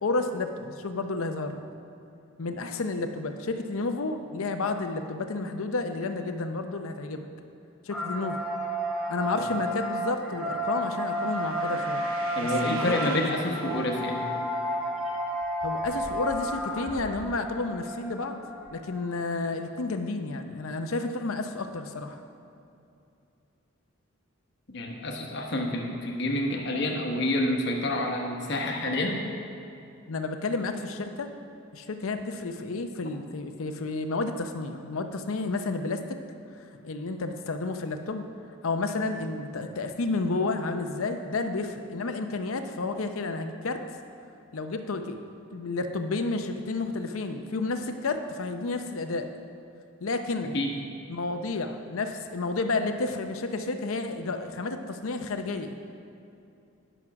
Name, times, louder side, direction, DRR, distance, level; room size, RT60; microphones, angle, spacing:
voice 1, 0.0-1.6 2.4-7.3 7.8-8.5 9.1-12.1 12.4-13.4 15.6-18.4 18.7-22.2 25.5-25.7 30.1-31.3 31.7-36.2 36.8-38.2 38.6-43.8 44.5-45.2 45.5-49.3 50.0-50.5 51.1-55.7, left 3 dB, 75° left, 7 dB, 0.7 m, -31 dB
sound 1, 7.9-19.3, right 1 dB, 5° right, 0.9 m, -32 dB
sound 2, 10.5-14.2, right 4 dB, 75° right, 0.8 m, -43 dB
voice 2, 12.3-14.2 24.7-29.3 50.5-50.7, left 1 dB, 50° left, 0 dB, 1.0 m, -28 dB
9.9 x 6.1 x 5.9 m, 2.6 s
head